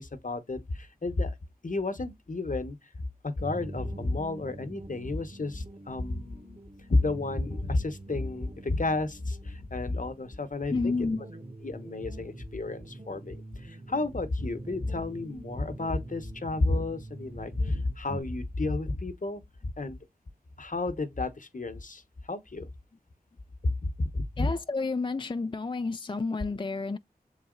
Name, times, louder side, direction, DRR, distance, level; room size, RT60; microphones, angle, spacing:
voice 1, 0.0-1.3 1.6-6.6 6.9-10.9 11.6-20.0 20.6-22.0 22.3-22.7 23.6-24.5, left 2 dB, 55° left, 1.1 m, -31 dB
sound 1, 3.4-18.2, right 2 dB, 35° right, 1.4 m, -44 dB
voice 2, 10.7-11.2 24.4-27.0, left 3 dB, 30° left, 0.4 m, -30 dB
6.9 x 4.0 x 3.8 m
wide cardioid pair, 45°, 16 cm